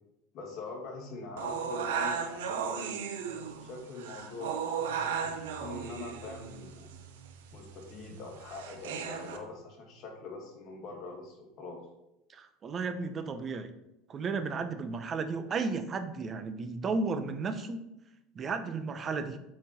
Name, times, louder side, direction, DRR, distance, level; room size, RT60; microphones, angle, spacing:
voice 1, 0.3-2.9 3.6-6.9 7.5-11.8, left 3 dB, 50° left, -1 dB, 2.3 m, -43 dB
sound 1, 1.4-9.4, right 6 dB, 90° right, 0.9 m, -36 dB
voice 2, 12.3-13.7 14.1-17.8 18.3-19.4, right 4 dB, 30° right, 9 dB, 0.8 m, -34 dB
7.7 x 4.4 x 4.3 m, 0.88 s
supercardioid pair, 110°, 0 cm